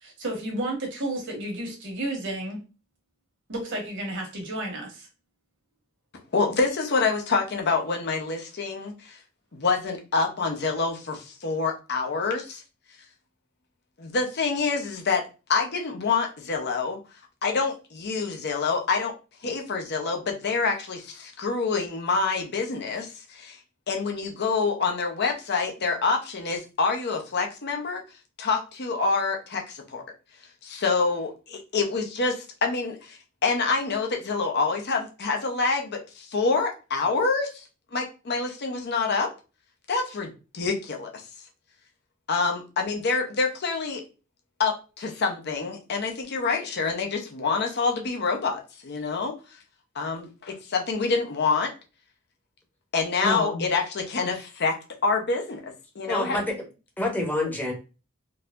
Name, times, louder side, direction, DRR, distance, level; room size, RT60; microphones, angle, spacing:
voice 1, 0.0-2.6 3.5-5.1, right 1 dB, 60° right, 2 dB, 1.3 m, -32 dB
voice 2, 6.3-9.2 9.5-12.6 14.0-17.0 17.4-19.1 19.4-23.6 23.9-28.0 28.4-30.0 30.6-37.6 37.9-39.3 39.9-41.2 42.3-44.0 44.6-49.3 49.9-51.7 52.9-54.8 55.0-56.4, left 4 dB, 55° left, 3 dB, 0.8 m, -27 dB
voice 3, 53.2-53.6 56.1-56.5 57.0-57.7, left 1 dB, 10° left, 1 dB, 0.9 m, -27 dB
4.0 x 2.7 x 2.5 m, 0.31 s
head